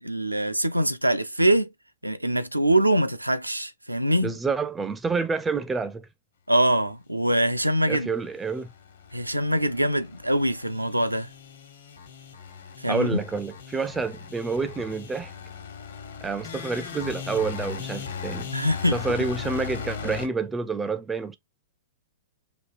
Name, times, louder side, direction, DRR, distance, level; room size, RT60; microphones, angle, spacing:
voice 1, 0.0-1.7 2.0-4.4 6.5-8.1 9.1-11.3 12.8-13.2 18.5-19.0, right 1 dB, 85° right, 0.5 m, -23 dB
voice 2, 4.2-6.1 7.9-8.7 12.9-15.3 16.2-18.5 18.9-21.4, right 4 dB, 10° right, 0.4 m, -28 dB
sound 1, 7.9-20.3, left 7 dB, 65° left, 1.2 m, -38 dB
5.3 x 2.8 x 2.5 m
figure-of-eight pair, 100°, 0 cm